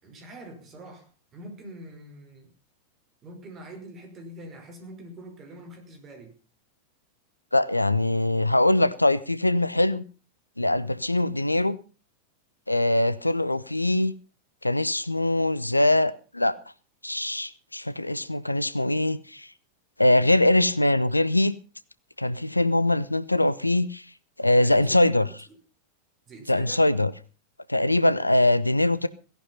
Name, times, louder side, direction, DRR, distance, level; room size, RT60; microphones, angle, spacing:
voice 1, 0.0-2.5 3.2-6.4 24.5-25.6 26.3-26.9, right 1 dB, 25° right, 5.3 m, -44 dB
voice 2, 7.5-10.0 10.6-11.8 12.7-14.1 14.6-16.6 17.0-19.5 20.0-21.6 22.2-24.0 24.4-25.3 26.5-27.1 27.7-29.1, left 1 dB, 85° left, 0.8 m, -22 dB
17.5 x 11.0 x 5.5 m
figure-of-eight pair, 90°, 0 cm